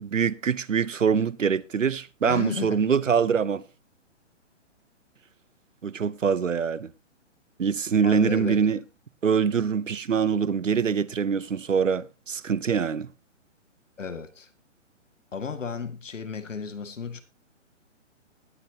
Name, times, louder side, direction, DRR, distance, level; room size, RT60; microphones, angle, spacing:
voice 1, 0.0-3.6 5.8-6.9 7.6-8.8 9.2-13.1, right 6 dB, 90° right, 0.9 m, -24 dB
voice 2, 2.2-2.9 8.0-8.6 14.0-14.5 15.3-17.2, left 5 dB, 80° left, 2.1 m, -34 dB
19.5 x 8.1 x 2.9 m
hypercardioid pair, 135°, 37 cm